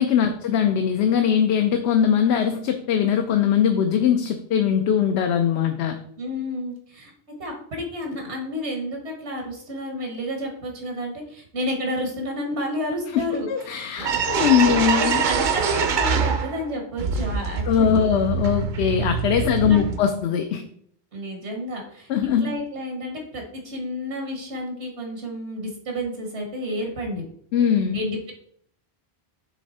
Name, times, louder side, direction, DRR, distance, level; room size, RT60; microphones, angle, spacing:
voice 1, 0.0-6.0 13.1-15.2 17.7-20.6 22.1-22.5 27.5-28.0, left 8 dB, 75° left, 6 dB, 0.8 m, -21 dB
voice 2, 6.2-7.1 7.4-13.5 13.7-13.8 14.7-18.1 19.6-19.9 21.1-22.1 22.4-27.2 27.9-28.3, equal, 85° right, 2 dB, 1.4 m, -30 dB
sound 1, 13.6-13.7 14.0-16.7 17.0-20.0, right 6 dB, 55° right, 0.6 m, -24 dB
7.3 x 3.3 x 4.1 m, 0.65 s
omnidirectional pair, 1.1 m